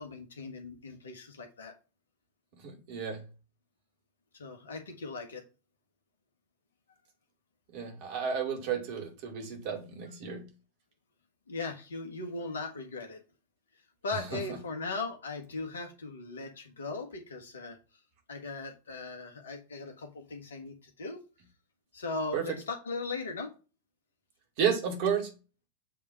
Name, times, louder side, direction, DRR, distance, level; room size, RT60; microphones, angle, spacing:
voice 1, 0.0-1.7 4.3-5.4 11.5-13.2 14.0-17.8 18.3-21.2 21.9-23.5, left 3 dB, 65° left, 1.5 m, -38 dB
voice 2, 2.6-3.2 7.7-10.4 14.3-14.4 22.3-22.4 24.6-25.3, right 7 dB, 50° right, 2.4 m, -32 dB
7.5 x 3.6 x 5.4 m
figure-of-eight pair, 90°, 0 cm